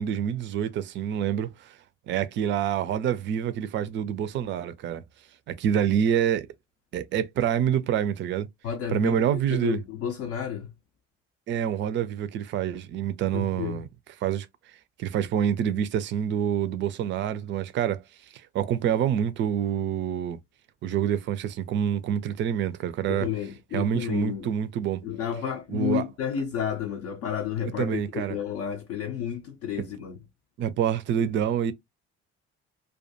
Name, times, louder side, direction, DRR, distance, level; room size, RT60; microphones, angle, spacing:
voice 1, 0.0-1.7 2.1-5.0 5.5-6.5 6.9-8.5 8.9-9.8 11.5-13.9 14.2-14.5 15.0-18.0 18.5-20.4 20.8-23.3 23.7-25.0 25.7-26.0 27.8-28.4 29.8-29.9 30.6-31.7, right 9 dB, 35° right, 0.4 m, -27 dB
voice 2, 8.6-10.7 13.3-13.8 23.1-24.5 25.0-30.2 31.2-31.3, left 9 dB, 50° left, 0.5 m, -31 dB
2.3 x 2.2 x 2.6 m
figure-of-eight pair, 45°, 33 cm